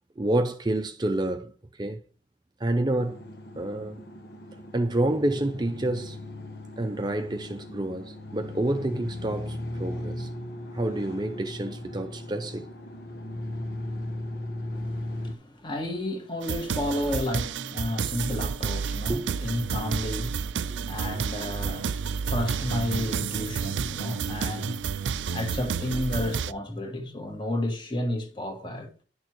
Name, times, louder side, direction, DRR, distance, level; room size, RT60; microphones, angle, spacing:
voice 1, 0.2-2.0 2.6-3.2 3.5-4.0 4.7-6.2 6.8-10.3 10.7-12.7 19.1-19.3, right 1 dB, 25° right, 0.5 m, -28 dB
sound 1, 2.9-15.3, left 1 dB, 60° left, 1.1 m, -37 dB
voice 2, 14.7-28.9, left 1 dB, 25° left, 1.7 m, -32 dB
sound 2, 16.4-26.5, right 6 dB, 90° right, 0.5 m, -30 dB
11.0 x 6.6 x 3.0 m
head